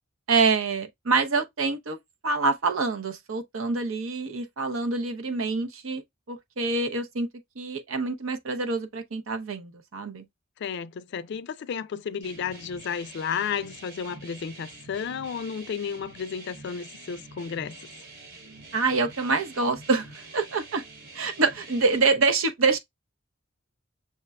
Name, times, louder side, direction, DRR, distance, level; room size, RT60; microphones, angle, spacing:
voice 1, 0.3-2.0 2.2-6.0 6.3-7.3 7.6-10.3 18.7-20.8 21.1-22.8, right 4 dB, 80° right, 0.7 m, -26 dB
voice 2, 10.6-17.9, left 7 dB, 60° left, 0.3 m, -33 dB
sound 1, 12.2-22.0, right 3 dB, 55° right, 1.1 m, -46 dB
6.4 x 2.2 x 2.3 m
head